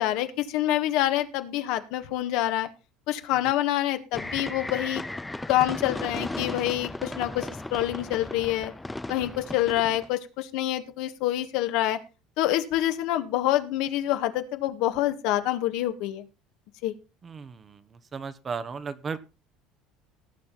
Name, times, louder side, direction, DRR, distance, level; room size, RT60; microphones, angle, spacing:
voice 1, 0.0-2.7 3.1-5.0 5.5-8.7 9.1-12.0 12.4-16.2 16.8-16.9, left 13 dB, 70° left, 8 dB, 1.7 m, -26 dB
sound 1, 4.1-10.1, left 2 dB, 10° left, 0.6 m, -36 dB
voice 2, 17.2-19.2, right 5 dB, 25° right, 14 dB, 1.0 m, -35 dB
18.0 x 7.3 x 4.1 m, 0.31 s
cardioid pair, 145°, 0 cm